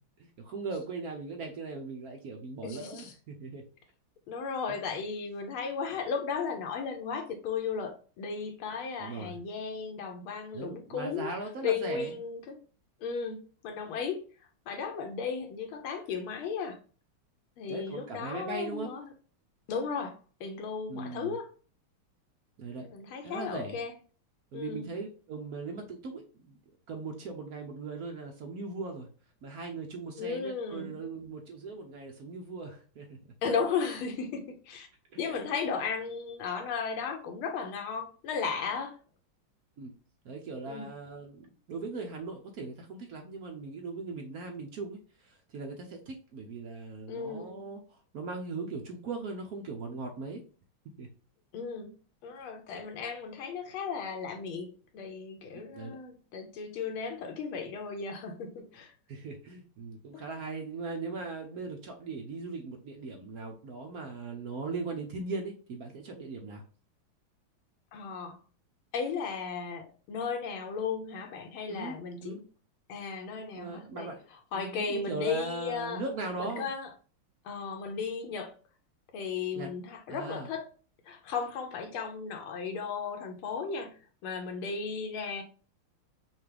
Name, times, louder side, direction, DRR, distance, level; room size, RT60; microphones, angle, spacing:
voice 1, 0.2-3.6 4.7-5.0 9.0-9.4 10.5-12.2 17.7-18.9 20.9-21.4 22.6-22.9 23.2-23.8 24.5-26.6 26.9-29.1 29.4-33.2 35.1-35.4 39.8-39.9 40.2-50.4 51.0-51.1 55.7-56.0 59.1-66.6 71.7-72.0 72.2-72.4 73.6-74.2 74.5-76.7 79.5-79.7 80.1-80.5, right 3 dB, 75° right, 0.8 m, -39 dB
voice 2, 2.6-3.1 4.3-11.3 11.6-12.6 13.0-13.4 13.6-14.2 14.7-16.8 17.6-19.1 19.7-20.1 20.4-21.5 22.8-23.9 24.5-24.9 30.2-30.9 33.4-34.9 35.2-38.9 40.6-40.9 47.1-47.6 51.5-51.9 52.2-58.9 60.1-60.2 67.9-68.4 68.9-72.4 72.9-74.1 74.5-76.0 76.4-76.9 77.4-78.5 79.1-80.7 81.1-83.9 84.2-85.4, left 5 dB, 75° left, 1.6 m, -35 dB
5.7 x 2.4 x 3.3 m
omnidirectional pair, 2.4 m